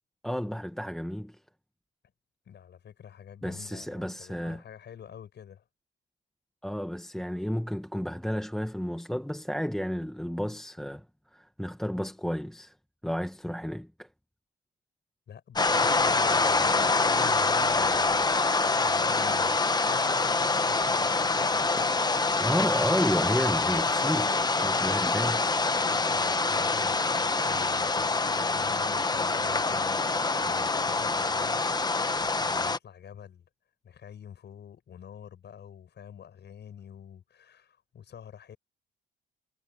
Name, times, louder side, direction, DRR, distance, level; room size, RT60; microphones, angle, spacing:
voice 1, 0.2-1.4 3.4-4.6 6.6-11.0 11.3-12.7 13.0-14.1 22.4-25.5, equal, ahead, 1.4 m, -32 dB
voice 2, 2.4-5.7 15.3-18.2 18.7-19.6 19.8-21.6 25.9-33.5 33.8-38.6, left 8 dB, 60° left, 7.8 m, -47 dB
sound 1, 15.6-32.8, left 3 dB, 20° left, 1.1 m, -25 dB
cardioid pair, 90°, 20 cm